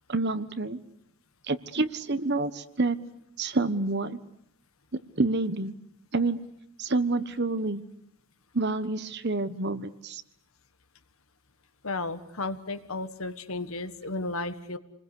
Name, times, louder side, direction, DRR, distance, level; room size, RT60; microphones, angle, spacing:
voice 1, 0.1-0.8 1.5-3.0 3.4-4.2 5.2-5.7 6.1-6.4 6.8-7.8 8.5-10.2, right 3 dB, 50° right, 12 dB, 1.3 m, -28 dB
voice 2, 11.8-14.8, left 2 dB, 70° left, 10 dB, 1.6 m, -33 dB
28.5 x 21.0 x 8.4 m, 0.76 s
head